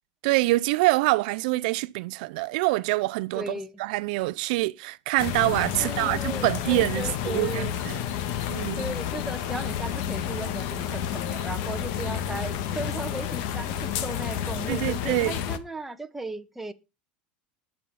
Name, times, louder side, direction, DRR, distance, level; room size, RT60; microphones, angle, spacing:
voice 1, 0.2-3.5 3.8-8.0 8.5-8.9 14.7-15.3, right 20 dB, 70° right, 0.6 m, -25 dB
voice 2, 3.3-3.7 5.8-7.8 8.8-16.7, right 2 dB, 5° right, 1.2 m, -36 dB
sound 1, 5.2-15.6, left 9 dB, 60° left, 1.6 m, -30 dB
20.5 x 7.2 x 4.1 m
supercardioid pair, 135°, 5 cm